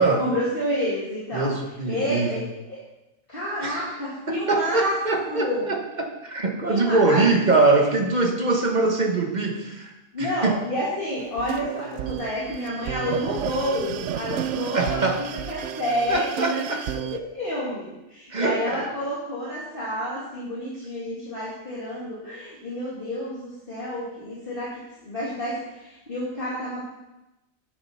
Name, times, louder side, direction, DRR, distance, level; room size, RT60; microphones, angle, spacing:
voice 1, 0.2-1.5 1.9-2.8 3.3-5.0 5.2-5.7 6.6-7.9 10.1-26.8, equal, 40° left, -8 dB, 2.5 m, -30 dB
voice 2, 1.3-2.4 3.6-3.8 4.3-9.9 10.2-10.6 14.7-15.2 16.1-16.8 18.3-18.9, right 3 dB, 35° right, 3 dB, 1.3 m, -23 dB
sound 1, 11.2-17.2, right 11 dB, 70° right, 0.8 m, -32 dB
9.1 x 8.4 x 5.6 m, 0.96 s
omnidirectional pair, 1.4 m